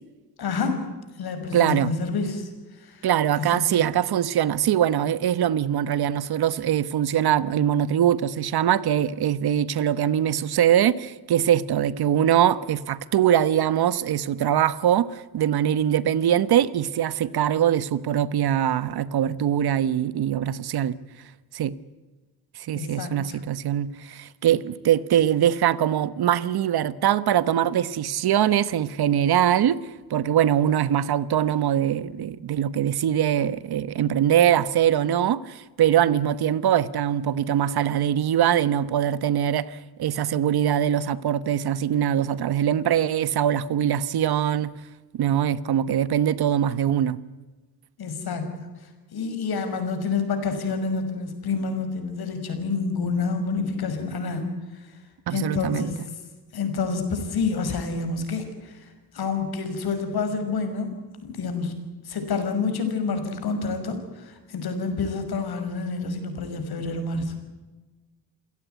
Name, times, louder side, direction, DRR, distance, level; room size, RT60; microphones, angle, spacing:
voice 1, 0.4-0.9 1.2-2.5 2.8-3.1 3.5-3.6 22.7-23.4 48.0-48.6 49.1-54.5 54.7-54.9 55.3-56.0 56.5-58.9 59.1-60.9 61.2-61.7 62.0-67.4, left 4 dB, 80° left, 5.9 m, -28 dB
voice 2, 1.5-1.9 3.0-21.0 21.5-21.7 22.5-29.8 30.1-44.7 45.1-47.2 55.3-55.9, right 10 dB, 85° right, 1.2 m, -22 dB
28.5 x 17.5 x 9.3 m
wide cardioid pair, 125°, 37 cm